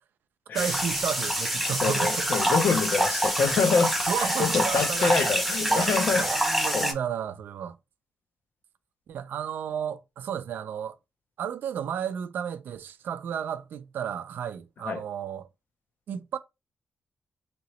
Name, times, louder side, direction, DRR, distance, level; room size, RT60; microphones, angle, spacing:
voice 1, 0.5-2.3 4.1-5.3 5.6-7.8 9.1-11.0 11.4-15.5 16.1-16.4, right 8 dB, 80° right, 0.4 m, -33 dB
sound 1, 0.6-6.9, right 1 dB, ahead, 0.7 m, -26 dB
voice 2, 1.8-6.2 6.7-6.9 14.9-15.0, left 5 dB, 65° left, 0.6 m, -26 dB
2.9 x 2.9 x 3.0 m
cardioid pair, 120°, 3 cm